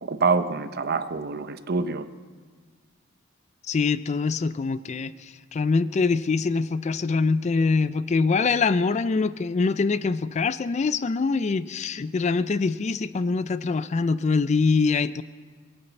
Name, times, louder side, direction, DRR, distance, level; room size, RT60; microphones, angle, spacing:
voice 1, 0.0-2.1, right 4 dB, 50° right, 11 dB, 0.7 m, -26 dB
voice 2, 3.7-15.2, left 4 dB, 35° left, 15 dB, 0.4 m, -24 dB
23.0 x 8.7 x 6.9 m, 1.5 s
head